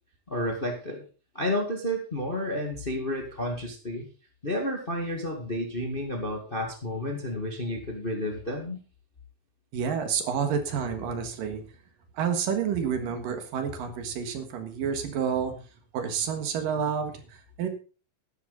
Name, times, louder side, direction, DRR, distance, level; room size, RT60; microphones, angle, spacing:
voice 1, 0.3-1.0 1.3-4.1 4.4-8.8, left 1 dB, 25° left, 3 dB, 1.3 m, -31 dB
voice 2, 9.7-11.6 12.1-15.5 15.9-17.7, right 7 dB, 75° right, 7 dB, 3.2 m, -29 dB
13.0 x 11.0 x 4.1 m, 0.35 s
omnidirectional pair, 4.0 m